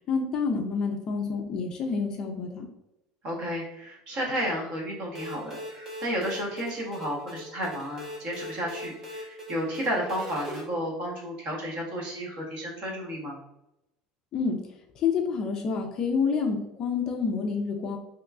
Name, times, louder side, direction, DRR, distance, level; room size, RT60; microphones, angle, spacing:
voice 1, 0.1-2.7 14.3-14.6 15.0-18.0, left 5 dB, 30° left, 3 dB, 0.4 m, -28 dB
voice 2, 3.2-13.4, equal, 40° right, -2 dB, 1.0 m, -32 dB
sound 1, 5.1-10.6, left 1 dB, 15° right, 0.8 m, -41 dB
3.6 x 2.9 x 2.3 m, 0.86 s
cardioid pair, 180°, 2 cm